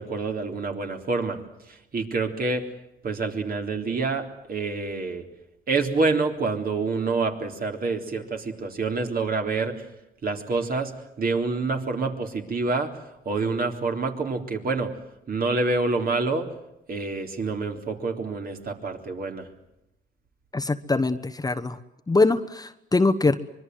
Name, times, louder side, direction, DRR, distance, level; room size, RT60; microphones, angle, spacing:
voice 1, 0.0-1.4 1.7-2.7 3.0-5.2 5.7-9.8 10.2-10.9 11.2-12.9 13.3-14.9 15.3-16.5 16.9-19.5, right 3 dB, 50° right, 4 dB, 3.7 m, -27 dB
voice 2, 20.5-21.8 22.1-23.3, left 3 dB, 20° left, 9 dB, 1.1 m, -22 dB
25.0 x 22.0 x 7.9 m, 0.88 s
cardioid pair, 90°, 20 cm